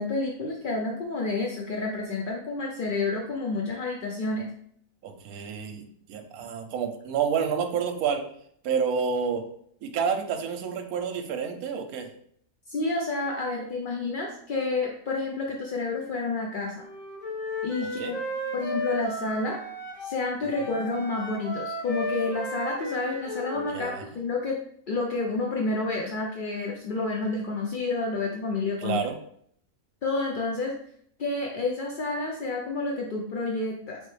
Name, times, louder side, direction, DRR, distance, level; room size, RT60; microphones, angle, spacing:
voice 1, 0.0-4.5 12.7-16.9 17.6-18.2 18.5-19.6 20.0-24.6 24.9-29.0 30.0-30.7 31.2-34.0, left 3 dB, 80° left, -1 dB, 0.4 m, -29 dB
voice 2, 5.0-8.2 8.6-9.4 9.8-12.1 18.0-18.1 20.6-20.7 23.5-24.0 28.8-29.2, right 6 dB, 70° right, 5 dB, 1.1 m, -29 dB
Wind instrument woodwind instrument, 16.7-20.2 20.5-24.0, left 1 dB, 45° left, 2.3 m, -34 dB
4.0 x 3.5 x 3.2 m, 0.64 s
omnidirectional pair, 1.7 m